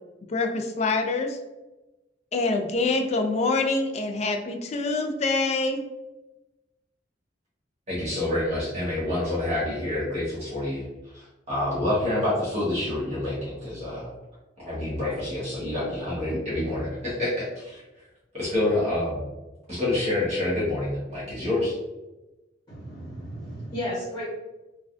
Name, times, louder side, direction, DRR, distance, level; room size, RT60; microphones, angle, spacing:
voice 1, 0.2-1.4 2.3-5.8, left 3 dB, 35° left, 4 dB, 0.3 m, -25 dB
voice 2, 7.9-10.9 11.1-14.1 14.7-17.8 18.3-19.2 19.7-21.8, left 1 dB, 40° right, -8 dB, 1.1 m, -27 dB
voice 3, 22.7-24.3, left 1 dB, 20° left, -8 dB, 1.0 m, -34 dB
3.3 x 2.2 x 2.5 m, 1.1 s
head